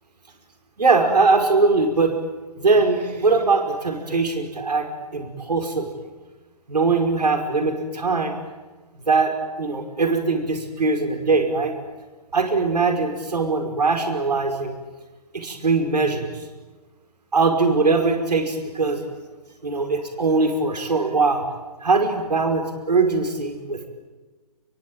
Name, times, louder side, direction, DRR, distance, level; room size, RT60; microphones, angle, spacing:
voice 1, 0.8-2.1 2.6-5.9 6.7-8.3 9.1-9.3 9.6-11.7 12.3-14.8 15.3-16.5 17.3-19.0 19.6-21.4 21.8-23.9, right 3 dB, 80° right, 4 dB, 5.4 m, -21 dB
27.5 x 23.0 x 9.1 m, 1.3 s
hypercardioid pair, 155°, 20 cm